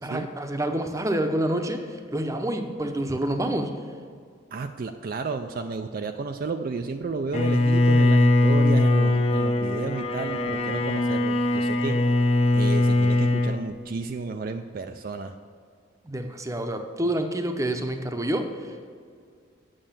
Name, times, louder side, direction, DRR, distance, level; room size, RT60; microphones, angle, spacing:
voice 1, 0.0-3.8 11.9-12.0 16.0-18.9, right 1 dB, 15° right, 6 dB, 0.7 m, -28 dB
voice 2, 4.5-15.4, right 4 dB, 45° right, 6 dB, 0.4 m, -32 dB
Bowed string instrument, 7.3-13.6, left 2 dB, 30° left, 0.7 m, -21 dB
8.8 x 6.4 x 7.3 m, 2.2 s
head